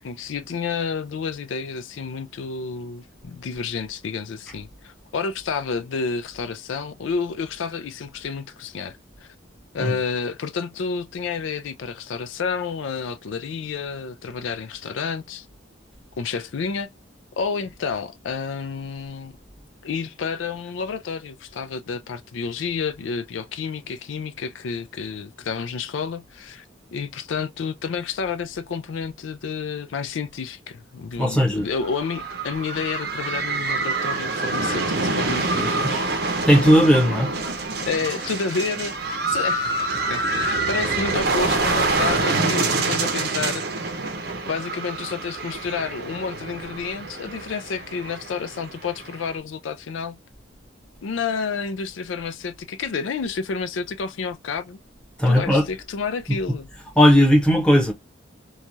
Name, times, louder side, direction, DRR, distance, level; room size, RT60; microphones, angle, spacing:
voice 1, 0.0-9.3 9.7-15.5 16.2-16.9 17.4-19.3 19.8-26.6 26.9-36.1 37.8-43.6 44.5-50.2 51.0-54.8 55.3-56.7, left 5 dB, 85° left, 0.4 m, -30 dB
voice 2, 31.2-31.7 36.5-37.3 55.2-55.6 56.3-56.4 57.0-57.9, equal, 5° left, 0.8 m, -16 dB
sound 1, 31.7-49.4, right 3 dB, 55° right, 0.6 m, -26 dB
3.1 x 2.3 x 2.6 m
head